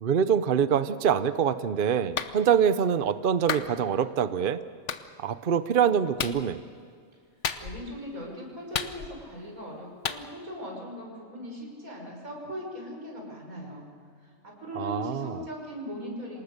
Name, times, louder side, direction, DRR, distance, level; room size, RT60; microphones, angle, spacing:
voice 1, 0.0-4.6 5.2-6.6 14.8-15.4, right 8 dB, 50° right, 13 dB, 0.8 m, -25 dB
Clapping, 2.2-2.3 3.5-3.7 4.9-5.0 6.2-6.4 7.4-7.9 8.7-9.3 10.1-10.2, left 7 dB, 60° left, 1.2 m, -31 dB
voice 2, 7.6-13.9 14.2-16.4, equal, 85° right, -1 dB, 6.2 m, -39 dB
27.5 x 19.0 x 6.7 m, 2.2 s
omnidirectional pair, 1.4 m